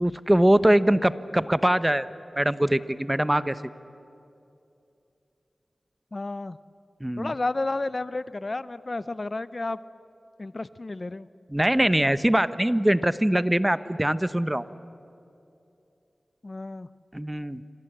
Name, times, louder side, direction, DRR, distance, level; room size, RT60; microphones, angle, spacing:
voice 1, 0.0-2.1 2.4-3.6 7.0-7.3 11.5-14.6 17.1-17.6, right 1 dB, 15° right, 14 dB, 0.9 m, -22 dB
voice 2, 6.1-6.6 7.2-9.8 10.4-11.3 16.4-16.9, left 2 dB, 45° left, 16 dB, 0.6 m, -31 dB
27.0 x 24.5 x 8.0 m, 2.7 s
cardioid pair, 45°, 0 cm